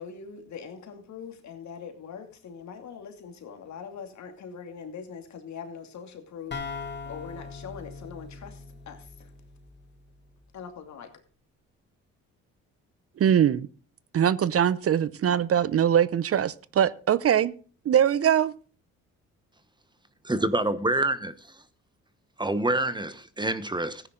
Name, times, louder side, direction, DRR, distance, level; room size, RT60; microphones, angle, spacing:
voice 1, 0.0-9.3 10.5-11.1, left 6 dB, 65° left, 2.6 m, -42 dB
sound 1, 6.5-10.2, left 4 dB, 35° left, 2.2 m, -40 dB
voice 2, 13.2-13.7 14.1-17.5 17.9-18.5, right 9 dB, 50° right, 0.7 m, -22 dB
voice 3, 20.2-21.6 22.4-24.0, right 1 dB, 15° right, 1.0 m, -27 dB
15.0 x 10.0 x 3.8 m
cardioid pair, 90°, 30 cm